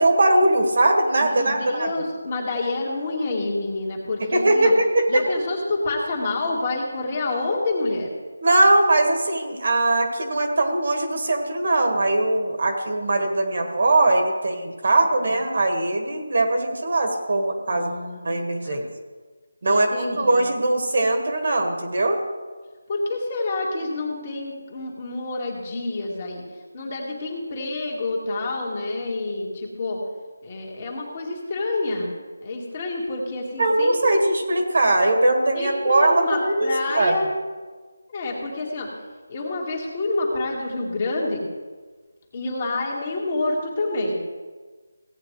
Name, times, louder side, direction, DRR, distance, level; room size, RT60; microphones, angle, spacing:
voice 1, 0.0-1.9 4.3-5.2 8.4-17.9 18.2-18.8 19.6-22.2 33.6-37.2, right 2 dB, 55° right, 3 dB, 1.8 m, -20 dB
voice 2, 1.2-4.7 5.1-8.1 15.3-15.4 17.7-18.8 19.7-20.5 22.9-26.4 26.7-30.0 30.4-32.1 32.4-34.2 35.5-37.3 38.1-38.9 39.3-41.4 42.3-44.2, left 2 dB, 30° left, -2 dB, 2.0 m, -28 dB
16.5 x 8.8 x 3.3 m, 1.4 s
figure-of-eight pair, 170°, 0 cm